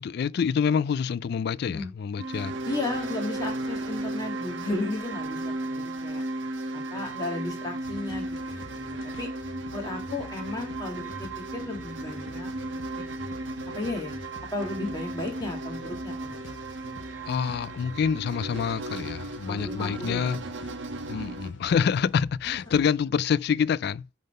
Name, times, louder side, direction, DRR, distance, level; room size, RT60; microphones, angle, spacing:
voice 1, 0.0-2.5 17.3-20.4 21.1-24.1, left 7 dB, 60° left, 0.3 m, -26 dB
sound 1, 2.2-21.5, right 2 dB, 85° right, 1.1 m, -35 dB
voice 2, 2.7-6.2 6.7-8.3 8.7-9.3 9.7-12.5 13.7-14.2 14.5-16.6 19.4-20.4, left 2 dB, 20° left, 1.8 m, -34 dB
sound 2, 7.8-22.9, left 2 dB, 75° left, 1.0 m, -47 dB
9.2 x 3.7 x 5.3 m
head